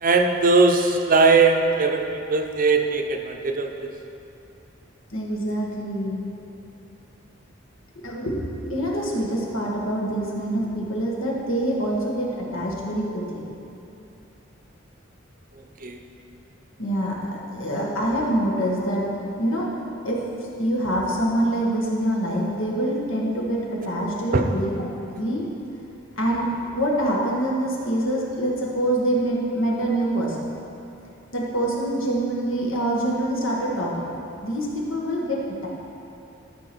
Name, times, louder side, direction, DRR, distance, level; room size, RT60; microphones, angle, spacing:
voice 1, 0.0-3.7 15.8-16.0 24.3-24.4, right 3 dB, 45° right, 4 dB, 0.7 m, -19 dB
voice 2, 5.1-6.2 8.0-8.4 8.7-13.4 16.8-19.1 19.4-19.7 20.1-20.2 20.6-24.9 25.2-25.5 26.2-30.5 31.3-34.1 34.4-35.7, right 1 dB, 85° left, -3 dB, 1.7 m, -25 dB
13.0 x 5.8 x 4.5 m, 2.8 s
head